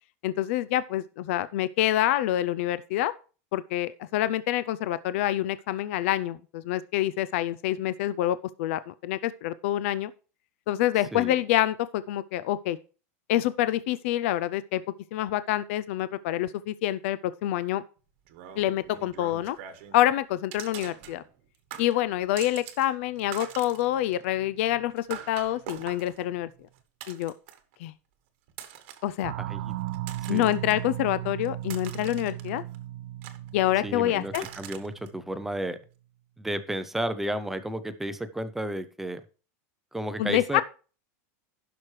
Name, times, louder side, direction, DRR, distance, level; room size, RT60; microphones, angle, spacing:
voice 1, 0.2-3.1 3.5-10.1 10.7-12.8 13.3-14.8 15.1-17.8 18.6-19.6 19.9-21.2 21.8-26.5 27.1-27.3 27.8-27.9 29.0-29.3 30.3-32.6 33.5-34.4 40.2-40.6, left 13 dB, 55° left, 16 dB, 0.4 m, -27 dB
sound 1, 18.3-20.0 20.5-21.4 21.7-22.9 23.1-27.7 28.5-29.1 29.7-30.7 31.2-32.8 33.2-33.9 34.3-35.1, right 10 dB, 50° right, 1.1 m, -44 dB
sound 2, 29.2-35.6, right 14 dB, 90° right, 0.5 m, -37 dB
voice 2, 29.4-29.7 30.3-30.5 33.8-35.8 36.4-39.2 39.9-40.6, right 1 dB, 5° right, 11 dB, 0.5 m, -32 dB
15.5 x 6.0 x 3.2 m, 0.37 s
supercardioid pair, 170°, 8 cm